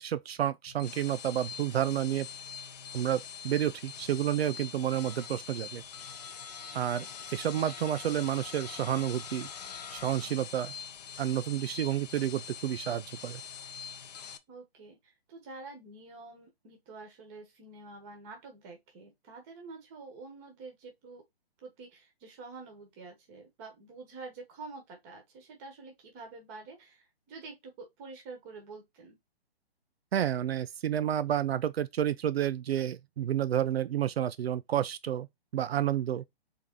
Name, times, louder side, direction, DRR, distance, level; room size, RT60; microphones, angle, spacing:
voice 1, 0.0-2.3 2.9-5.8 6.7-7.1 7.3-9.5 9.9-10.7 11.2-13.4 30.1-35.3 35.5-36.2, right 10 dB, 75° right, 0.5 m, -30 dB
sound 1, 0.7-14.4, left 7 dB, 40° left, 0.6 m, -44 dB
voice 2, 6.7-7.2 14.5-21.2 21.6-29.2, right 3 dB, 15° right, 1.1 m, -48 dB
3.8 x 3.5 x 3.6 m
hypercardioid pair, 165°, 31 cm